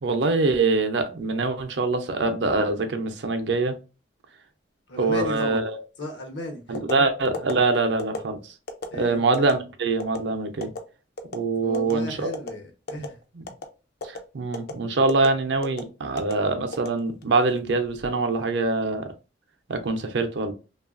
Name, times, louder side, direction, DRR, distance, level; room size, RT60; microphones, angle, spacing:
voice 1, 0.0-3.8 5.0-5.8 6.7-8.4 9.0-10.7 11.3-12.3 13.4-13.5 14.0-19.1 19.7-20.5, right 3 dB, 70° right, 0.5 m, -24 dB
voice 2, 4.9-5.6 6.0-6.8 8.9-9.2 11.6-13.2, left 1 dB, 75° left, 0.9 m, -34 dB
sound 1, 6.7-7.0 7.3-7.5 8.0-8.2 8.7-8.9 9.3-9.5 10.0-10.2 10.6-10.8 11.2-11.4 11.7-11.9 12.3-12.5 12.9-13.1 13.5-13.7 14.0-14.2 14.5-14.7 15.1-15.3 15.6-15.8 16.2-16.3 16.7-17.4 17.8-18.1, left 3 dB, 60° left, 0.5 m, -32 dB
2.9 x 2.3 x 2.4 m
head